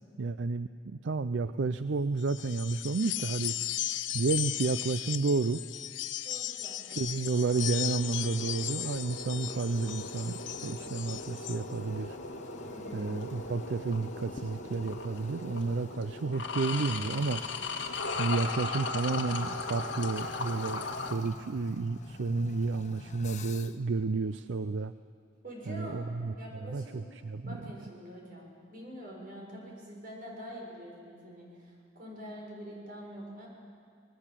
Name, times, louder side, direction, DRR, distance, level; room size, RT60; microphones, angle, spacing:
voice 1, 0.2-3.5 4.1-5.6 7.0-12.2 12.9-17.4 18.1-24.9 25.7-26.3 26.6-27.6, right 4 dB, 75° right, 12 dB, 0.5 m, -31 dB
sound 1, 2.2-11.6, left 13 dB, 90° left, 0.7 m, -36 dB
voice 2, 6.2-7.0 12.6-13.1 25.4-26.0 26.4-27.0 27.4-33.5, equal, 50° right, -1 dB, 6.6 m, -45 dB
sound 2, 7.3-21.1, left 3 dB, 70° left, 1.9 m, -38 dB
Toilet flush, 8.8-23.9, left 3 dB, 40° left, 0.8 m, -49 dB
26.5 x 20.0 x 7.5 m, 2.3 s
head